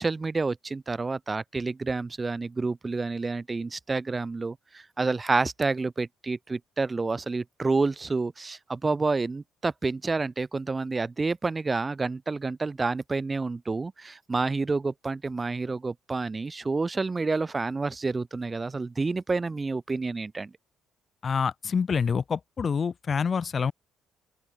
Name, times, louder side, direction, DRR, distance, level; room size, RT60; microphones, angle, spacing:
voice 1, 0.0-20.5, right 3 dB, 20° right, 1.4 m, -29 dB
voice 2, 21.2-23.7, left 6 dB, 35° left, 0.6 m, -27 dB
open air
cardioid pair, 125°, 0 cm